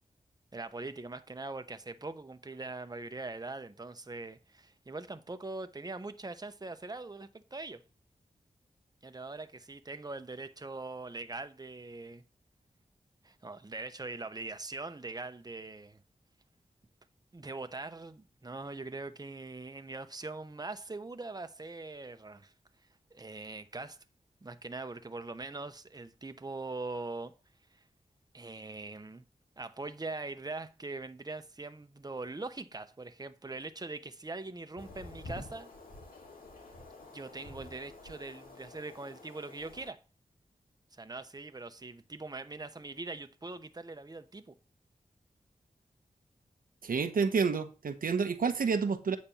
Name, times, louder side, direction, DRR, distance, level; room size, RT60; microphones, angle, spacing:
voice 1, 0.5-7.8 9.0-12.2 13.2-16.0 17.3-22.5 23.1-24.0 24.4-27.3 28.3-29.2 29.6-35.7 37.1-40.0 40.9-44.5, right 3 dB, 25° right, 0.9 m, -42 dB
sound 1, 34.8-39.9, left 2 dB, 85° left, 2.5 m, -49 dB
voice 2, 46.8-49.2, right 5 dB, 85° right, 1.0 m, -29 dB
8.9 x 4.3 x 7.1 m
cardioid pair, 45°, 14 cm